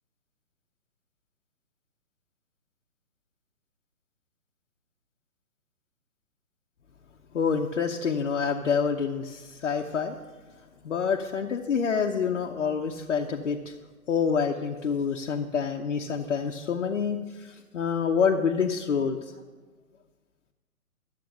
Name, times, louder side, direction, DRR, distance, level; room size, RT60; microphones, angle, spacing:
voice 1, 7.3-10.2 10.5-13.8 14.1-19.4, left 6 dB, 60° left, 1 dB, 0.8 m, -27 dB
12.0 x 7.6 x 6.6 m, 1.4 s
figure-of-eight pair, 135°, 43 cm